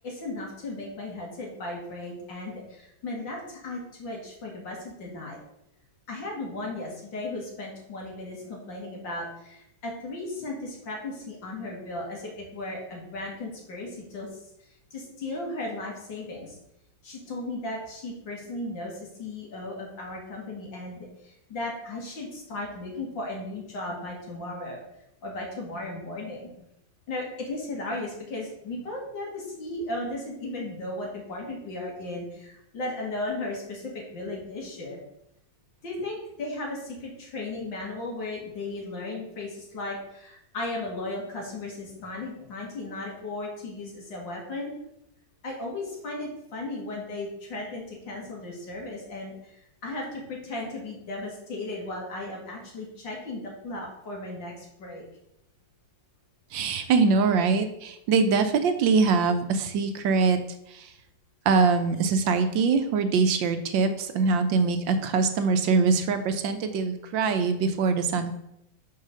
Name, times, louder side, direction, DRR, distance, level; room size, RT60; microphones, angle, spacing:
voice 1, 0.0-5.4 6.1-14.3 14.9-16.5 17.0-24.8 25.2-26.5 27.1-35.0 35.8-44.7 45.4-55.0, left 2 dB, 70° left, -2 dB, 2.9 m, -36 dB
voice 2, 56.5-60.4 60.7-60.9 61.5-68.3, right 4 dB, 75° right, 8 dB, 1.4 m, -23 dB
5.7 x 5.4 x 6.4 m, 0.81 s
omnidirectional pair, 2.1 m